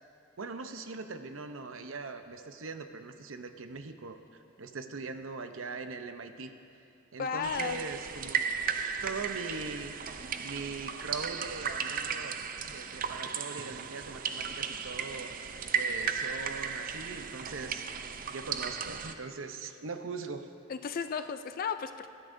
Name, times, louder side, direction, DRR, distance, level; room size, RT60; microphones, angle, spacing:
voice 1, 0.4-6.5 7.1-8.6 9.0-9.9 10.4-20.5, right 4 dB, 85° right, 8 dB, 0.7 m, -41 dB
voice 2, 7.2-7.8 20.7-22.1, left 6 dB, 45° left, 10 dB, 0.4 m, -34 dB
sound 1, 7.4-19.1, right 6 dB, 45° right, 0.5 m, -35 dB
20.5 x 12.5 x 2.7 m, 2.5 s
head